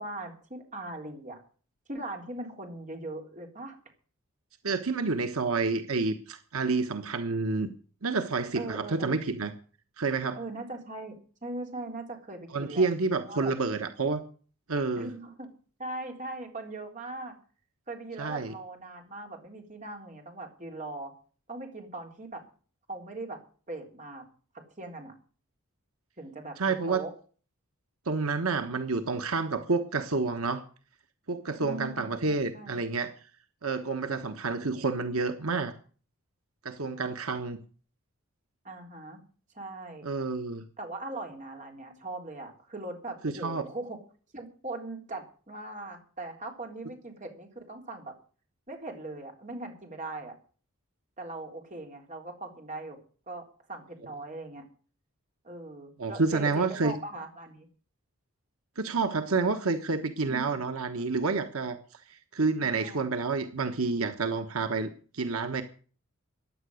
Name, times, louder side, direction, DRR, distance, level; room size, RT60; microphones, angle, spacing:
voice 1, 0.0-1.4 1.9-3.8 8.5-9.1 10.4-11.2 11.4-12.9 13.2-13.5 15.0-15.5 15.8-17.3 17.9-21.1 21.5-22.4 22.9-23.4 23.7-24.3 24.8-25.1 26.2-27.1 31.6-32.8 38.6-39.2 39.5-40.1 40.8-44.0 44.3-48.1 48.7-50.3 51.2-53.0 53.3-54.6 55.4-57.7 60.3-60.7 62.6-63.0, right 2 dB, 35° right, 3 dB, 3.7 m, -40 dB
voice 2, 4.6-7.7 8.0-9.5 10.0-10.4 12.5-14.2 14.7-15.1 18.2-18.5 26.6-27.0 28.0-30.6 31.3-33.1 33.6-35.7 36.6-37.6 40.0-40.6 43.2-43.6 56.0-56.9 58.8-61.8 62.1-65.6, right 4 dB, 80° right, 8 dB, 1.3 m, -29 dB
15.5 x 10.5 x 6.5 m, 0.41 s
head